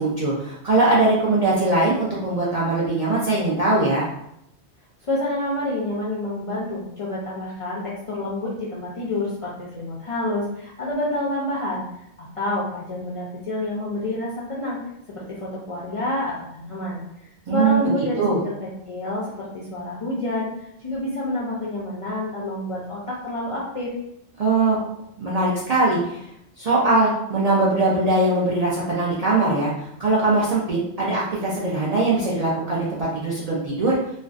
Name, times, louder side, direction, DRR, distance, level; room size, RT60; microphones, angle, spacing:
voice 1, 0.0-4.1 17.5-17.8 18.2-18.4 24.4-24.8 25.2-26.2 26.6-33.9, right 2 dB, 55° right, -7 dB, 0.4 m, -21 dB
voice 2, 5.0-11.8 12.2-14.8 15.1-20.5 20.8-23.9, left 1 dB, 50° left, -6 dB, 0.4 m, -28 dB
2.4 x 2.1 x 2.4 m, 0.78 s
omnidirectional pair, 1.1 m